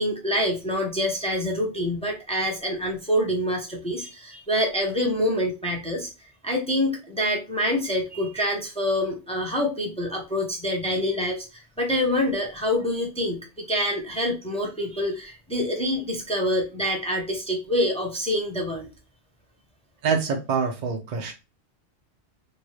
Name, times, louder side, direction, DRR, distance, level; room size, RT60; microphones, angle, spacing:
voice 1, 0.0-6.1 6.4-18.9, equal, 5° left, 0 dB, 0.6 m, -26 dB
voice 2, 20.0-21.3, right 5 dB, 50° right, 2 dB, 0.6 m, -25 dB
2.7 x 2.4 x 3.1 m, 0.28 s
omnidirectional pair, 1.1 m